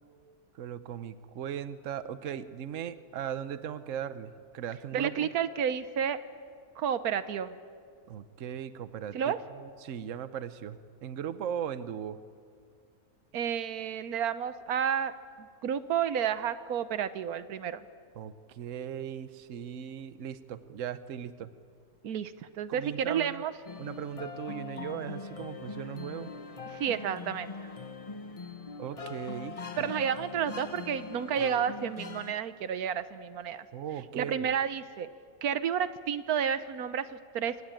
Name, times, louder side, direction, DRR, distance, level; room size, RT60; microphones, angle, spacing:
voice 1, 0.5-5.3 8.1-12.2 18.2-21.5 22.7-23.4 23.8-26.3 28.8-29.9 33.7-34.5, right 9 dB, 65° right, 12 dB, 1.2 m, -38 dB
voice 2, 4.9-6.2 6.8-7.5 9.1-9.4 13.3-15.1 15.6-17.9 22.0-23.5 26.7-27.7 29.8-33.7 34.1-35.1 35.4-37.5, right 8 dB, 85° right, 13 dB, 1.4 m, -31 dB
sound 1, 23.6-32.3, left 4 dB, 30° left, 0.9 m, -42 dB
24.5 x 19.0 x 9.0 m, 2.2 s
omnidirectional pair, 1.5 m